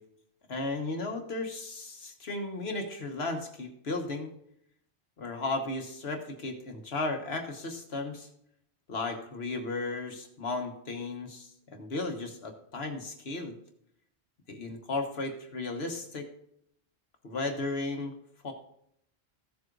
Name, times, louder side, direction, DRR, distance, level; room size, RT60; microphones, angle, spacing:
voice 1, 0.5-4.3 5.2-8.3 8.9-13.5 14.5-16.3 17.2-18.1 18.4-18.5, left 3 dB, 75° left, 3 dB, 1.6 m, -35 dB
15.0 x 7.7 x 2.6 m, 0.70 s
omnidirectional pair, 1.1 m